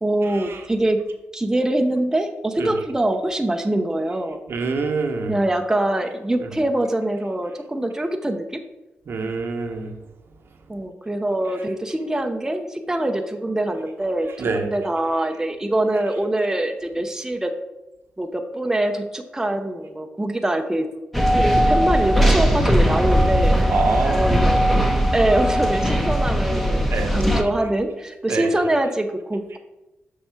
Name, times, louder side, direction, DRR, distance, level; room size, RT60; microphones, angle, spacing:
voice 1, 0.0-1.0 1.3-4.4 5.3-8.6 10.7-17.5 18.2-20.9 21.5-23.5 24.1-24.8 25.1-29.6, right 1 dB, 10° right, 4 dB, 0.7 m, -24 dB
voice 2, 4.5-5.3 9.1-9.9 14.4-14.6 23.7-24.3 26.9-27.1 28.3-28.5, right 4 dB, 65° right, 5 dB, 1.0 m, -25 dB
sound 1, 21.1-27.4, equal, 5° left, 1.0 m, -19 dB
7.0 x 4.6 x 4.5 m, 0.99 s
cardioid pair, 60°, 4 cm